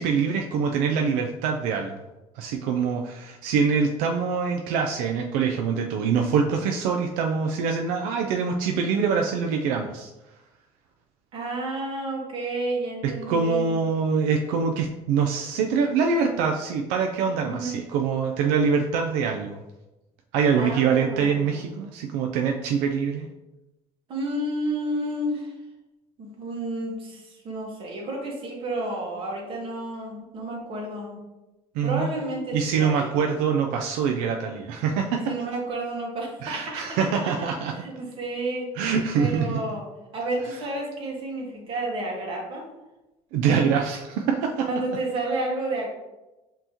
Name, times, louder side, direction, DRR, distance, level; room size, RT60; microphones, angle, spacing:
voice 1, 0.0-2.0 2.4-10.1 13.0-19.6 20.3-23.3 31.8-32.1 32.5-35.3 36.4-37.7 38.8-39.6 43.3-44.7, right 6 dB, 85° right, 3 dB, 0.4 m, -24 dB
voice 2, 11.3-13.8 17.5-17.8 20.5-21.6 24.1-25.5 26.2-31.2 31.8-33.3 35.1-38.7 39.2-39.9 40.1-42.7 44.7-45.9, right 1 dB, 45° right, -1 dB, 1.4 m, -31 dB
5.3 x 2.9 x 2.9 m, 1.0 s
cardioid pair, 115°, 13 cm